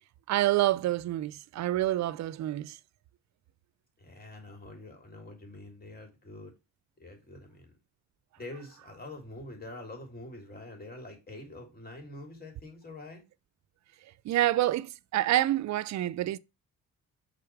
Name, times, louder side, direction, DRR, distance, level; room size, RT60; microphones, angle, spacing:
voice 1, 0.3-2.7 14.3-16.4, right 14 dB, 65° right, 0.5 m, -27 dB
voice 2, 4.0-6.5 7.0-7.8 8.4-13.2, left 2 dB, 30° left, 3.2 m, -45 dB
6.8 x 4.0 x 4.7 m
cardioid pair, 90°, 30 cm